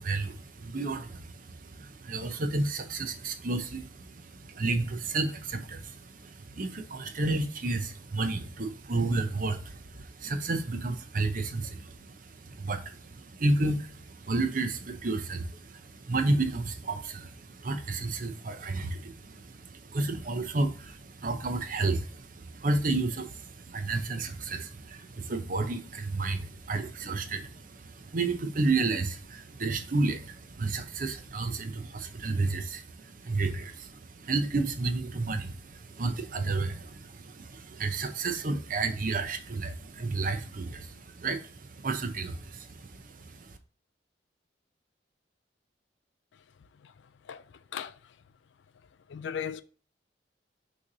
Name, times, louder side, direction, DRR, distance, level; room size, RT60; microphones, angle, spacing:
voice 1, 0.0-43.5, right 3 dB, 50° right, 0.7 m, -32 dB
voice 2, 47.7-48.1 49.1-49.6, left 8 dB, 80° left, 0.4 m, -37 dB
6.2 x 3.3 x 2.6 m
head